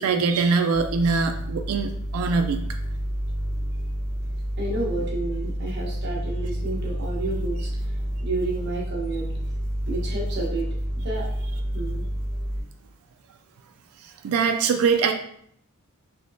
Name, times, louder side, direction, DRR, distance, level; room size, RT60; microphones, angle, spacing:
voice 1, 0.0-2.6 14.2-15.1, right 5 dB, 70° right, 5 dB, 0.3 m, -22 dB
sound 1, 0.7-12.6, equal, 85° left, 0.9 m, -29 dB
voice 2, 4.6-7.7 8.2-9.3 9.9-10.7 11.0-11.3 11.7-12.0, right 2 dB, 50° right, -3 dB, 1.0 m, -30 dB
3.4 x 2.9 x 2.6 m, 0.68 s
head